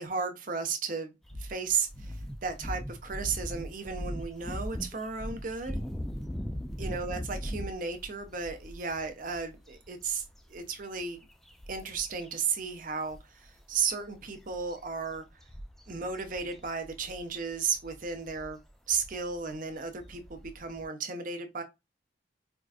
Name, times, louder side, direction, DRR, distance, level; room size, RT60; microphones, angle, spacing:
voice 1, 0.0-5.8 6.8-10.2 10.5-11.2 11.7-15.2 15.9-18.6 18.9-21.6, right 5 dB, 45° right, 0.6 m, -34 dB
sound 1, 1.2-12.3 12.6-12.8 13.1-20.9, equal, ahead, 0.3 m, -40 dB
4.4 x 2.4 x 2.4 m
head